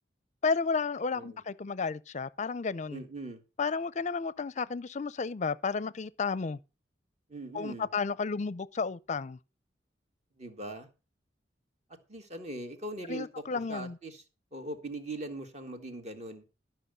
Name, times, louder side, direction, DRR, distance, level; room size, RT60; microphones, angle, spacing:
voice 1, 0.4-3.0 3.6-6.6 7.5-9.4 13.1-14.0, left 4 dB, 40° left, 0.5 m, -32 dB
voice 2, 2.9-3.4 7.3-7.9 10.4-10.9 12.1-14.2 14.5-16.4, right 2 dB, 40° right, 1.9 m, -41 dB
12.5 x 6.0 x 6.6 m
head